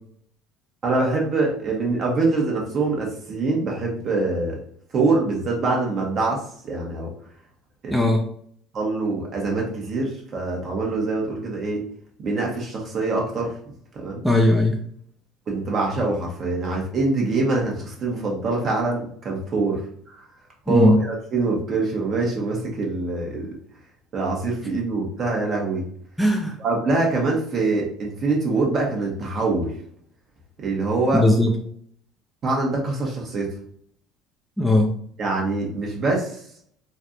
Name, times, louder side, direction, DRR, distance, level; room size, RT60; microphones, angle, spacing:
voice 1, 0.8-4.6 4.9-7.1 7.8-8.0 8.7-11.8 12.2-13.5 13.9-14.2 15.5-19.8 20.1-20.2 20.7-23.5 24.1-25.8 26.6-29.7 30.6-31.3 32.4-33.5 35.2-36.4, right 3 dB, 45° right, -1 dB, 1.2 m, -24 dB
voice 2, 7.9-8.3 14.2-14.8 20.7-21.0 26.2-26.5 31.1-31.5 34.6-34.9, left 1 dB, ahead, 1 dB, 0.5 m, -18 dB
3.3 x 2.3 x 2.7 m, 0.62 s
hypercardioid pair, 70°, 0 cm